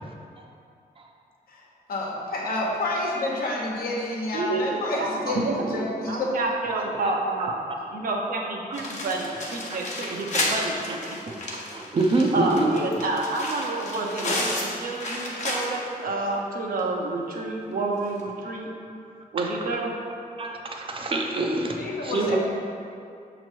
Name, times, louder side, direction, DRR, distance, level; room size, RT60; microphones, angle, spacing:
voice 1, 1.5-5.4 5.7-6.3 21.8-22.4, left 2 dB, 75° left, -3 dB, 1.0 m, -29 dB
voice 2, 4.3-7.6 7.9-11.2 12.3-18.7 19.3-19.9, right 2 dB, 65° right, 0 dB, 0.7 m, -29 dB
sound 1, 8.7-16.0 16.3-16.4 16.8-16.9 18.1-18.2, left 1 dB, 50° left, 0.9 m, -32 dB
voice 3, 11.7-12.8 19.4-19.5 20.4-22.4, right 2 dB, 35° right, 1 dB, 0.5 m, -25 dB
6.8 x 3.0 x 4.5 m, 2.5 s
wide cardioid pair, 180°, 15 cm